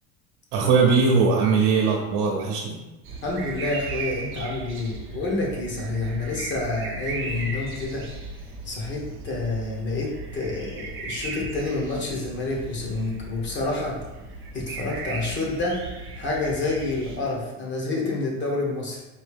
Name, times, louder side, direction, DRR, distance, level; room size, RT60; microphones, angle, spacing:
voice 1, 0.5-2.8, right 5 dB, 65° right, -1 dB, 0.9 m, -20 dB
sound 1, 3.0-17.2, right 3 dB, 35° right, 0.8 m, -36 dB
voice 2, 3.2-8.0 8.6-14.0 14.5-15.8 16.2-19.0, left 2 dB, 30° left, -2 dB, 1.2 m, -28 dB
4.8 x 2.8 x 3.5 m, 1.1 s
supercardioid pair, 130°, 35 cm